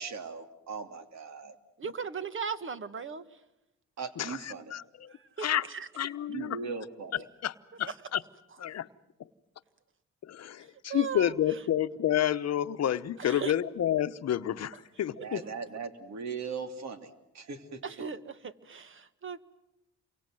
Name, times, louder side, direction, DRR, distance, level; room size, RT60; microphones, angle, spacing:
voice 1, 0.0-1.5 4.0-4.7 6.3-7.2 15.2-17.8, right 5 dB, 65° right, 8 dB, 3.0 m, -39 dB
voice 2, 1.8-3.2 5.4-5.9 7.8-7.9 10.9-11.6 13.2-13.5 17.8-19.4, right 6 dB, 40° right, 13 dB, 1.6 m, -37 dB
voice 3, 4.2-5.1 5.4-5.7 6.0-6.6 7.1-8.2 8.6-8.9 10.2-15.4, left 11 dB, 60° left, 11 dB, 1.0 m, -30 dB
29.0 x 24.0 x 7.8 m, 0.90 s
cardioid pair, 90°, 30 cm